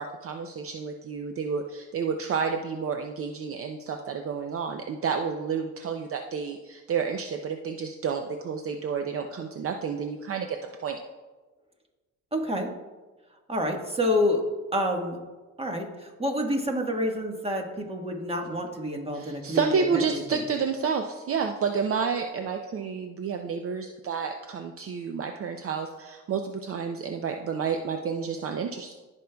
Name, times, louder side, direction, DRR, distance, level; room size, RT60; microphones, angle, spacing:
voice 1, 0.0-11.0 19.1-28.9, right 6 dB, 50° right, 5 dB, 0.6 m, -30 dB
voice 2, 12.3-12.7 13.5-14.4 14.7-15.2 15.6-20.0 20.3-20.4, left 1 dB, 20° right, 2 dB, 1.4 m, -28 dB
15.5 x 5.4 x 2.3 m, 1.2 s
cardioid pair, 90°, 30 cm